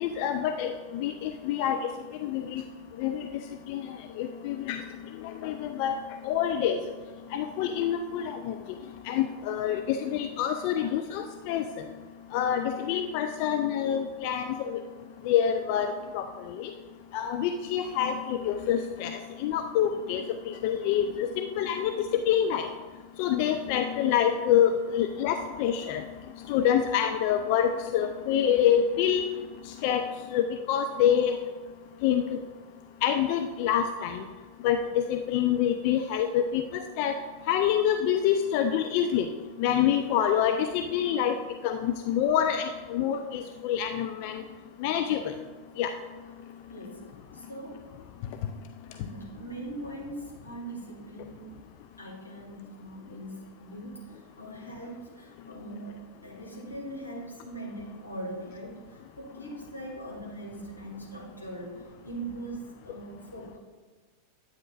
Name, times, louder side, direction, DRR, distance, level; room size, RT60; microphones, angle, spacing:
voice 1, 0.0-1.8 2.2-2.6 3.0-3.3 3.7-3.8 4.2-4.8 5.4-6.0 6.2-6.8 7.3-8.5 9.1-11.6 12.3-14.8 15.3-16.2 16.6-16.7 17.1-22.7 23.2-26.0 26.5-29.3 29.8-30.0 30.3-31.4 32.0-32.4 33.0-34.2 34.6-37.1 37.5-39.2 39.6-41.3 41.6-44.4 44.8-45.2 45.8-45.9, left 9 dB, 45° left, 7 dB, 0.4 m, -26 dB
voice 2, 46.7-47.0 47.3-47.8 48.9-51.5 52.0-63.6, right 1 dB, 90° left, -4 dB, 2.0 m, -41 dB
9.6 x 8.7 x 2.5 m, 1.4 s
figure-of-eight pair, 90°, 0 cm